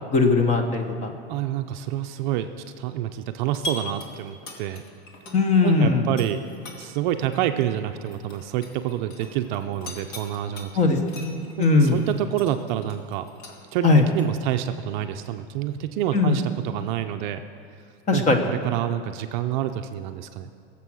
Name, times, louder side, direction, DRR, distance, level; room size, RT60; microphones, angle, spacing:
voice 1, 0.0-1.1 5.3-6.1 10.8-12.0 13.8-14.0 16.1-16.4 18.1-18.4, left 3 dB, 20° left, 5 dB, 1.3 m, -20 dB
voice 2, 1.3-4.8 5.6-6.4 6.8-10.7 11.6-13.3 13.7-17.4 18.1-20.5, right 11 dB, 45° right, 7 dB, 0.6 m, -28 dB
sound 1, 3.5-5.7 6.0-10.7 11.1-14.2, left 1 dB, 45° left, 2.5 m, -40 dB
20.0 x 7.6 x 6.3 m, 2.5 s
supercardioid pair, 150°, 33 cm